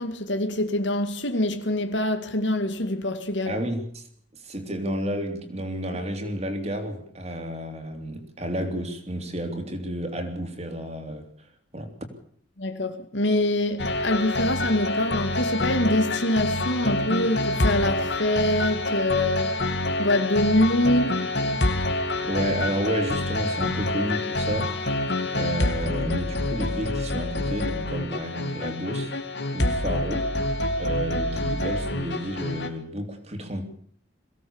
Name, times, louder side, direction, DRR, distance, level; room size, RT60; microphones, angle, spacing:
voice 1, 0.0-3.6 12.6-19.7 20.0-21.3, left 1 dB, 80° left, 2.3 m, -25 dB
voice 2, 3.4-4.0 4.3-11.3 11.7-11.9 22.2-24.9 25.3-29.1 29.5-30.3 30.8-33.6, equal, 35° right, 3.3 m, -31 dB
sound 1, 13.8-32.7, left 1 dB, 65° left, 2.3 m, -27 dB
22.5 x 17.0 x 7.2 m
head